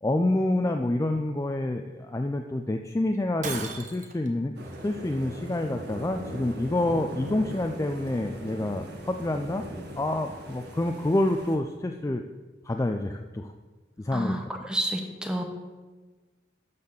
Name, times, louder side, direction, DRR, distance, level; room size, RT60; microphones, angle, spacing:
voice 1, 0.0-4.5 4.8-9.6 10.0-12.2 12.6-13.5 14.0-14.3, left 1 dB, 15° left, 5 dB, 0.4 m, -27 dB
Shatter, 3.4-4.3, right 4 dB, 40° right, 1.1 m, -35 dB
sound 1, 4.5-11.6, right 1 dB, 60° right, 1.6 m, -40 dB
voice 2, 14.1-15.4, right 1 dB, 5° right, 3 dB, 1.0 m, -30 dB
11.5 x 4.2 x 7.0 m, 1.3 s
head